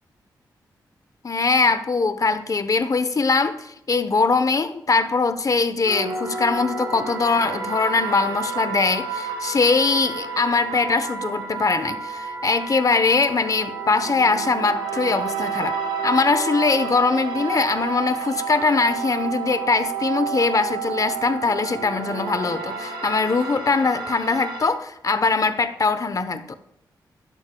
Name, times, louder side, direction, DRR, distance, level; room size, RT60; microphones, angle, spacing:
voice 1, 1.2-15.8 16.0-26.5, left 4 dB, 45° left, 0.9 m, -22 dB
sound 1, 5.8-24.7, right 5 dB, 85° right, 2.1 m, -30 dB
12.0 x 11.0 x 2.3 m
cardioid pair, 50°, 8 cm